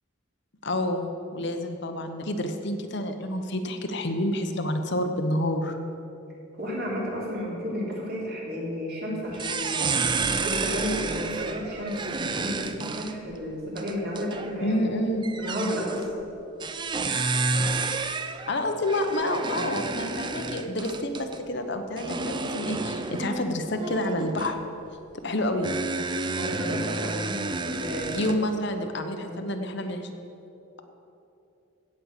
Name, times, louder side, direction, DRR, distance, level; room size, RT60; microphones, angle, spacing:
voice 1, 0.6-5.8 14.6-15.2 18.5-24.6 25.2-25.7 28.1-30.1, left 1 dB, 55° left, 6 dB, 0.9 m, -28 dB
voice 2, 6.6-10.0 10.4-14.8 15.4-16.1 26.3-28.3 29.1-29.4, equal, 45° right, -4 dB, 3.2 m, -32 dB
sound 1, 9.2-14.5 15.2-16.1 16.6-21.4 22.0-24.6 25.6-28.3, right 3 dB, 20° right, 0.4 m, -30 dB
16.0 x 5.5 x 8.1 m, 2.9 s
head